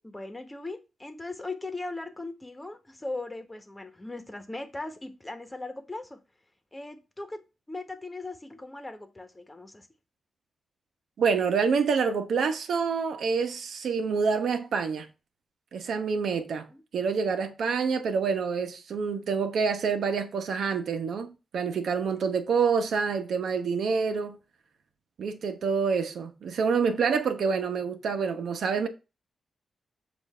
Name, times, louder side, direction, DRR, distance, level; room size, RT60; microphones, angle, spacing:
voice 1, 0.0-6.2 6.7-7.4 7.7-9.9 16.3-16.4 16.7-16.8, left 2 dB, 15° left, 1.2 m, -39 dB
voice 2, 11.2-15.1 15.7-16.7 16.9-24.4 25.2-28.9, right 5 dB, 80° right, 0.9 m, -27 dB
7.1 x 2.7 x 5.4 m
cardioid pair, 85°, 0 cm